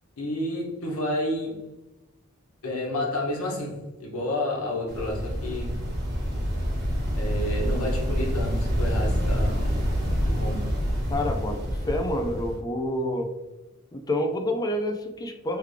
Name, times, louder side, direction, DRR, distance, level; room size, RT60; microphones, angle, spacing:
voice 1, 0.2-1.6 2.6-5.7 7.1-9.7 10.3-10.6, left 1 dB, 80° left, -2 dB, 1.1 m, -30 dB
sound 1, 4.9-12.6, equal, 50° right, 1.2 m, -27 dB
voice 2, 11.1-11.6 11.9-13.3 13.9-15.6, left 1 dB, 20° left, 4 dB, 0.4 m, -28 dB
3.5 x 3.3 x 3.3 m, 1.0 s
head